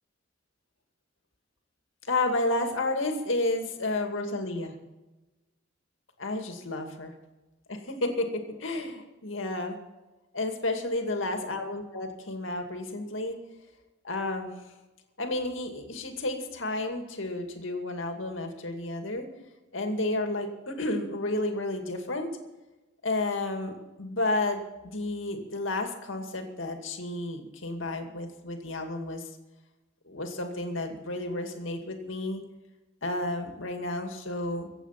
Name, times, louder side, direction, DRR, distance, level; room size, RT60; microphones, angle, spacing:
voice 1, 2.1-4.7 6.2-7.1 7.7-9.8 10.3-13.4 14.0-14.5 15.2-19.3 19.7-22.3 23.0-29.3 30.1-32.4 33.0-34.7, left 2 dB, 70° left, 5 dB, 2.3 m, -31 dB
24.0 x 8.3 x 5.9 m, 1.1 s
head